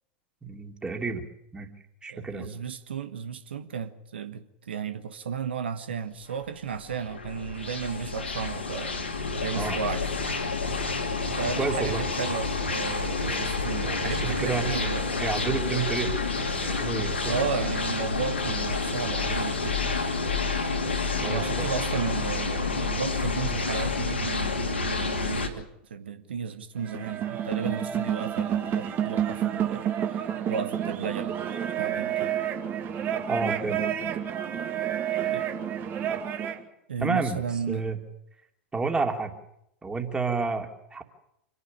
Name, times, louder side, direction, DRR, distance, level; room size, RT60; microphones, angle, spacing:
voice 1, 0.4-1.3 1.5-1.7 2.0-2.5 9.5-9.8 11.6-12.0 14.0-14.7 15.2-16.2 16.5-17.4 20.8-21.5 33.0-33.8 37.0-38.0 38.7-39.3 39.8-41.0, right 4 dB, 15° right, 2.8 m, -30 dB
voice 2, 2.1-9.0 9.4-10.6 11.4-15.1 17.3-19.9 21.2-32.3 35.1-35.5 36.9-37.8, right 6 dB, 70° right, 1.3 m, -34 dB
sound 1, 6.4-25.5, left 4 dB, 85° left, 2.7 m, -29 dB
sound 2, 26.8-36.6, right 9 dB, 35° right, 2.1 m, -29 dB
26.5 x 11.0 x 9.7 m
figure-of-eight pair, 90°, 6 cm